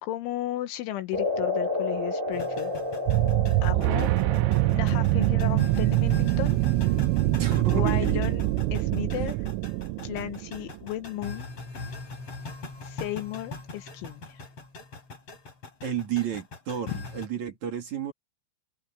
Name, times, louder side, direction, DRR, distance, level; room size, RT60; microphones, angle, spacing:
voice 1, 0.0-2.7 3.6-4.1 4.7-6.6 7.7-9.4 10.0-11.5 12.8-14.4 16.9-17.0, left 14 dB, 80° left, 3.1 m, -34 dB
sound 1, 1.1-9.5, left 2 dB, 15° right, 3.3 m, -34 dB
sound 2, 2.3-17.3, left 3 dB, 30° left, 7.1 m, -41 dB
sound 3, 3.1-10.8, right 20 dB, 85° right, 3.1 m, -24 dB
voice 2, 3.7-4.2 7.4-8.3 9.2-9.3 15.8-18.1, right 8 dB, 45° right, 2.8 m, -32 dB
omnidirectional pair, 6.0 m